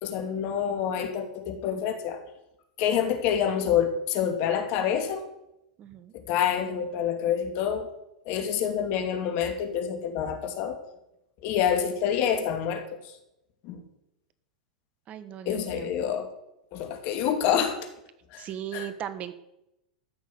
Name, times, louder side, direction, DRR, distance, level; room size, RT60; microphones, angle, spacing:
voice 1, 0.0-2.2 2.8-5.2 6.1-7.9 8.2-10.8 11.4-13.1 13.6-13.8 15.5-16.3 16.7-17.8 18.3-18.5 18.7-18.9, left 8 dB, 50° left, 5 dB, 2.6 m, -27 dB
voice 2, 5.8-6.1 15.1-15.9 18.4-19.4, right 10 dB, 35° right, 13 dB, 1.4 m, -37 dB
14.0 x 6.4 x 8.5 m, 0.86 s
hypercardioid pair, 105°, 4 cm